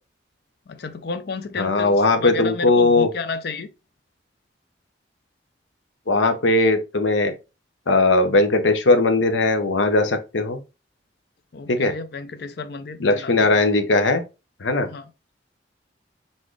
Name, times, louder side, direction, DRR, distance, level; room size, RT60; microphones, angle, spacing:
voice 1, 0.7-3.7 11.5-13.6 14.8-15.1, left 4 dB, 60° left, 0.5 m, -32 dB
voice 2, 1.6-3.1 6.1-7.3 7.9-10.6 11.7-11.9 13.0-14.2 14.6-14.9, left 2 dB, 90° left, 0.8 m, -19 dB
4.1 x 3.7 x 3.1 m
head